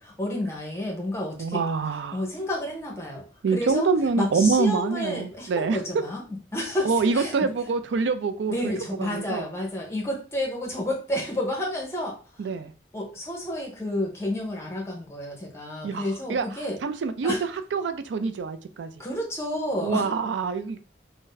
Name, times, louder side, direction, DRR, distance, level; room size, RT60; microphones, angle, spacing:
voice 1, 0.0-1.6 2.1-3.9 4.2-6.2 6.5-7.4 8.5-12.2 12.9-16.8 17.2-17.4 19.0-20.1, left 1 dB, 15° left, 0 dB, 0.7 m, -30 dB
voice 2, 1.4-2.2 3.4-5.8 6.8-8.7 9.0-9.5 12.4-12.7 15.8-18.9 19.8-20.8, right 4 dB, 90° right, 10 dB, 0.4 m, -26 dB
2.6 x 2.1 x 3.8 m, 0.37 s
head